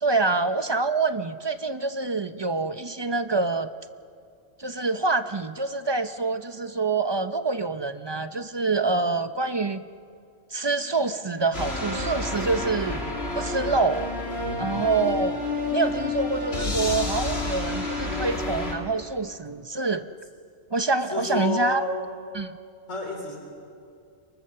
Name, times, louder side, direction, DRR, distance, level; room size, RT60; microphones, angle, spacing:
voice 1, 0.0-3.7 4.6-9.8 10.5-13.0 13.3-14.0 14.6-15.4 15.7-20.1 20.7-21.8 22.3-22.6, right 3 dB, 30° right, 10 dB, 0.5 m, -26 dB
sound 1, 11.5-18.8, left 2 dB, 50° left, 3.2 m, -29 dB
voice 2, 21.1-22.1 22.9-23.4, left 2 dB, 70° left, 1 dB, 4.1 m, -30 dB
30.0 x 24.0 x 6.8 m, 2.4 s
omnidirectional pair, 1.4 m